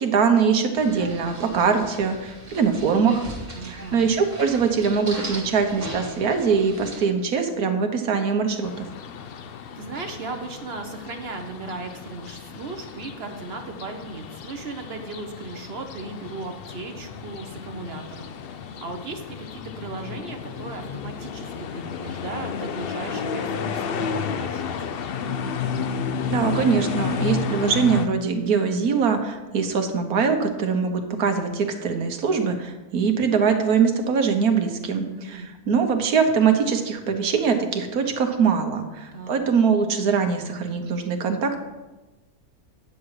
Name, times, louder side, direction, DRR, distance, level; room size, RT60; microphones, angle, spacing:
voice 1, 0.0-3.2 3.6-8.9 26.3-41.6, right 6 dB, 80° right, 5 dB, 1.6 m, -22 dB
sound 1, 0.7-7.1, right 1 dB, 25° right, 2.1 m, -38 dB
voice 2, 3.5-4.1 9.8-25.0 34.9-35.5 39.1-39.4, right 3 dB, 50° right, 5 dB, 1.0 m, -37 dB
sound 2, 8.6-28.1, left 6 dB, 65° left, 0.6 m, -32 dB
9.7 x 7.5 x 4.8 m, 1.1 s
omnidirectional pair, 1.6 m